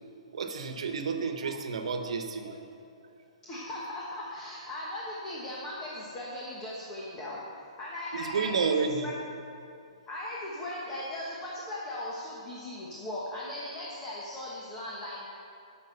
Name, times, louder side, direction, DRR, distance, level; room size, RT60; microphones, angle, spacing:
voice 1, 0.3-2.7 8.1-9.1, right 5 dB, 70° right, 6 dB, 1.2 m, -31 dB
voice 2, 3.4-7.4 7.8-8.7 9.0-9.1 10.1-15.3, left 1 dB, 15° left, -6 dB, 1.3 m, -38 dB
12.5 x 6.3 x 6.8 m, 2.5 s
hypercardioid pair, 175°, 4 cm